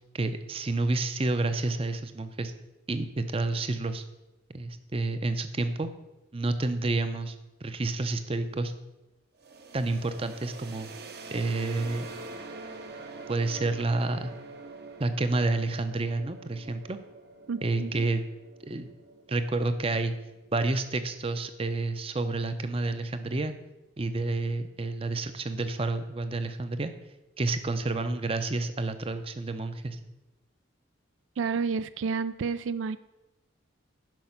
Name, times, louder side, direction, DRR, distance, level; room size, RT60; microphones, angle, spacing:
voice 1, 0.1-2.5 2.9-4.0 4.5-5.9 6.3-7.4 7.6-8.7 9.7-10.9 11.3-12.1 13.3-14.3 15.0-17.0 17.6-18.2 18.7-18.9 19.3-20.1 20.5-23.5 24.0-26.9 27.4-30.0, right 2 dB, 30° right, 10 dB, 0.6 m, -29 dB
sound 1, 9.4-21.1, right 3 dB, 55° right, 0.9 m, -45 dB
voice 2, 17.5-18.1 31.4-33.0, right 5 dB, 75° right, 14 dB, 0.4 m, -30 dB
10.5 x 5.9 x 5.9 m, 1.0 s
head